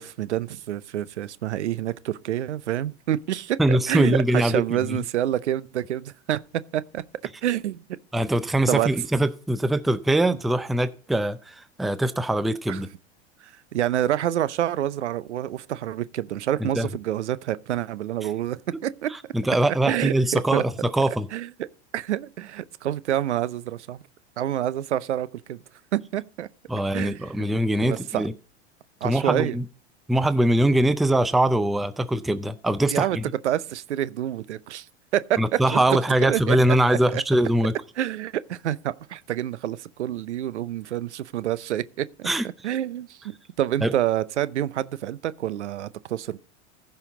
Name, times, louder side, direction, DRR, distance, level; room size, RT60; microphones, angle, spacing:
voice 1, 0.0-7.0 7.4-7.8 8.7-8.9 12.7-12.8 13.4-19.1 19.7-20.6 21.1-21.7 21.9-24.0 24.4-25.6 25.9-26.5 26.9-27.2 27.8-28.3 29.0-29.6 32.9-33.2 33.4-34.9 35.1-35.8 36.2-36.6 37.1-37.2 38.0-42.3 42.6-46.4, right 12 dB, 85° right, 0.7 m, -27 dB
voice 2, 3.6-5.0 8.1-12.9 16.6-16.9 19.1-21.3 26.7-28.3 29.0-29.6 30.1-33.2 35.4-37.7 42.2-42.5 43.8-43.9, right 1 dB, ahead, 0.4 m, -22 dB
15.0 x 5.7 x 3.9 m
hypercardioid pair, 95°, 34 cm